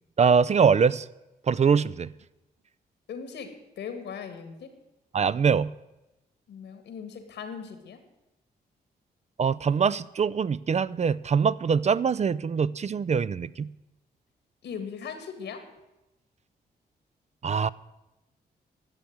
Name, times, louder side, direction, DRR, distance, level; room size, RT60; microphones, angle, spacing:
voice 1, 0.2-1.1 1.5-2.1 5.1-5.7 9.4-13.7 17.4-17.7, right 6 dB, 40° right, 17 dB, 0.4 m, -23 dB
voice 2, 3.1-4.7 6.5-8.0 14.6-15.6, left 6 dB, 85° left, 8 dB, 1.9 m, -39 dB
11.5 x 7.3 x 9.3 m, 0.97 s
cardioid pair, 60°, 17 cm